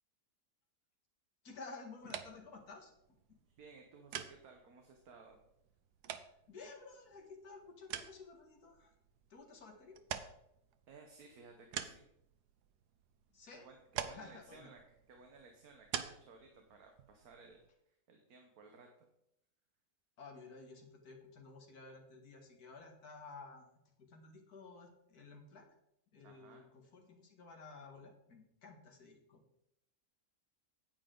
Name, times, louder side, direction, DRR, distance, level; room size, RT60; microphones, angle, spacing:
voice 1, 1.4-2.9 3.3-3.4 6.5-8.9 9.3-10.0 13.3-13.7 14.0-14.7 20.2-23.7 24.0-25.7 26.1-29.4, left 4 dB, 70° left, 2 dB, 2.3 m, -53 dB
sound 1, 2.0-17.7, right 9 dB, 85° right, 1.3 m, -49 dB
voice 2, 3.6-5.4 10.9-12.1 13.5-14.8 15.1-19.1 26.2-26.7, right 4 dB, 70° right, 3 dB, 1.5 m, -58 dB
9.8 x 8.9 x 3.8 m, 0.79 s
omnidirectional pair, 1.7 m